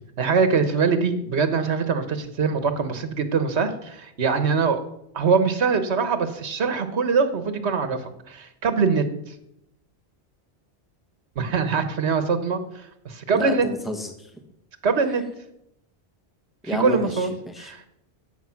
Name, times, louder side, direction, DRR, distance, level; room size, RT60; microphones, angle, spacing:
voice 1, 0.2-4.8 5.1-9.1 11.3-13.7 14.8-15.2 16.6-17.3 17.6-17.9, right 5 dB, 75° right, 9 dB, 1.5 m, -23 dB
voice 2, 13.3-14.3 16.7-17.7, equal, ahead, 4 dB, 1.5 m, -30 dB
17.0 x 8.2 x 5.9 m, 0.80 s
omnidirectional pair, 1.1 m